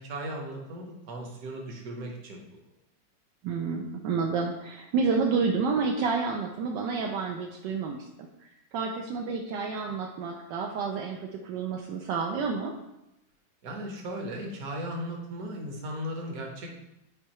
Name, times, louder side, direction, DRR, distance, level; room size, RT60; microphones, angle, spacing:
voice 1, 0.0-2.6 13.6-16.8, equal, 55° right, 1 dB, 1.4 m, -37 dB
voice 2, 3.4-8.1 8.7-12.7, right 5 dB, 80° right, 1 dB, 1.2 m, -29 dB
7.5 x 4.6 x 3.0 m, 0.90 s
omnidirectional pair, 2.0 m